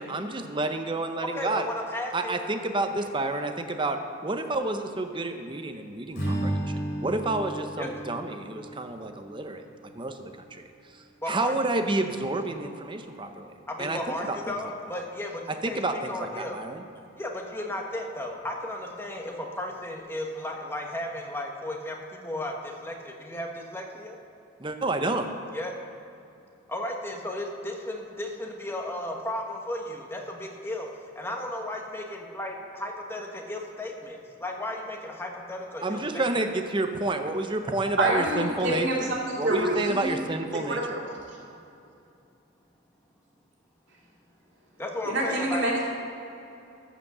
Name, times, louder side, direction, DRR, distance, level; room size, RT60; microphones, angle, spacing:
voice 1, 0.0-1.7 2.1-9.6 9.9-10.6 10.9-13.5 13.8-14.6 15.6-16.9 24.6-25.3 35.8-40.8, right 2 dB, 25° right, 6 dB, 0.7 m, -30 dB
voice 2, 1.2-2.4 7.8-7.9 11.2-11.5 13.7-16.6 17.2-24.2 25.5-25.7 26.7-30.9 31.2-36.3 44.8-45.7, left 1 dB, 10° left, 1 dB, 1.1 m, -34 dB
Strum, 6.1-10.5, right 1 dB, 50° left, 3.0 m, -34 dB
voice 3, 38.0-40.2 40.5-41.4 45.1-45.9, right 1 dB, 65° right, -3 dB, 2.3 m, -27 dB
14.0 x 5.1 x 6.7 m, 2.7 s
head